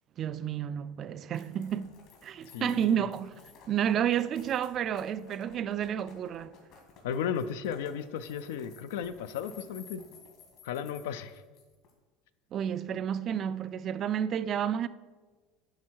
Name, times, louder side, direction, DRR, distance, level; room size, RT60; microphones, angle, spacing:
voice 1, 0.2-1.9 2.2-3.3 3.7-6.5 12.5-14.9, right 9 dB, 40° right, 0.3 m, -30 dB
sound 1, 1.3-11.9, left 6 dB, 65° left, 2.0 m, -55 dB
voice 2, 2.5-3.1 7.0-10.0 10.6-11.4, left 8 dB, 85° left, 0.4 m, -35 dB
10.5 x 3.6 x 4.6 m
supercardioid pair, 120°, 0 cm